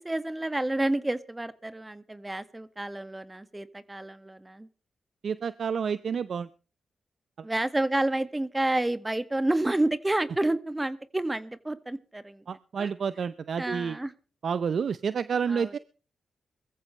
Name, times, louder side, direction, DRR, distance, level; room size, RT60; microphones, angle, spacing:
voice 1, 0.0-4.7 7.4-12.4 12.8-12.9 13.6-14.1 15.5-15.7, right 1 dB, 20° right, 12 dB, 1.8 m, -29 dB
voice 2, 5.2-6.5 7.4-7.5 12.5-14.0 14.4-15.8, right 6 dB, 65° right, 15 dB, 0.7 m, -29 dB
22.0 x 14.5 x 3.3 m, 0.37 s
supercardioid pair, 50°, 0 cm